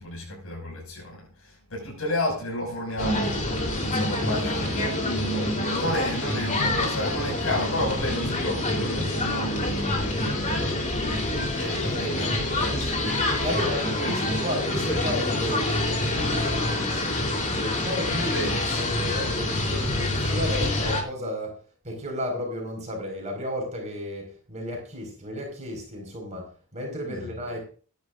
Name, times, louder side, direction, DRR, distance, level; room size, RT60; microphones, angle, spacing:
voice 1, 0.0-11.0 11.5-12.7 14.0-14.3 14.8-15.0 18.2-18.8 27.1-27.2, equal, 70° left, 6.0 m, -32 dB
sound 1, 3.0-21.0, left 2 dB, 35° left, 3.5 m, -27 dB
voice 2, 5.3-5.8 11.9-13.0 13.4-17.2 17.6-18.5 18.8-27.7, left 1 dB, 30° right, 5.0 m, -33 dB
20.0 x 11.0 x 2.6 m
head